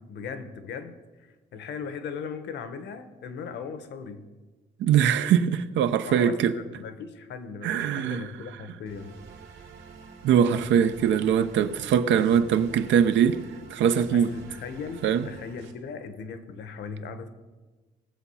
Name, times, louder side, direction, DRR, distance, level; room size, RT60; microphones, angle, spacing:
voice 1, 0.0-4.3 6.0-9.2 14.1-17.3, left 5 dB, 70° left, 1.1 m, -38 dB
voice 2, 4.8-6.5 7.6-8.2 10.2-13.4 13.7-14.3 15.0-15.3, right 8 dB, 90° right, 0.7 m, -22 dB
sound 1, 8.9-15.7, right 5 dB, 75° right, 2.0 m, -47 dB
18.0 x 7.1 x 5.6 m
cardioid pair, 160°, 19 cm